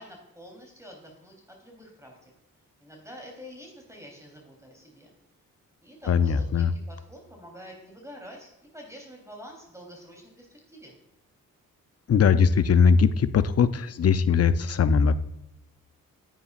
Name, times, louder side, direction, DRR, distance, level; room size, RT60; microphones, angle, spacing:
voice 1, 0.0-1.3 1.6-2.3 2.8-5.1 5.8-10.9, equal, 10° right, 0 dB, 3.5 m, -47 dB
voice 2, 6.1-6.7 12.1-15.1, left 6 dB, 45° left, 13 dB, 0.6 m, -20 dB
10.0 x 9.0 x 2.5 m, 0.90 s
supercardioid pair, 45°, 36 cm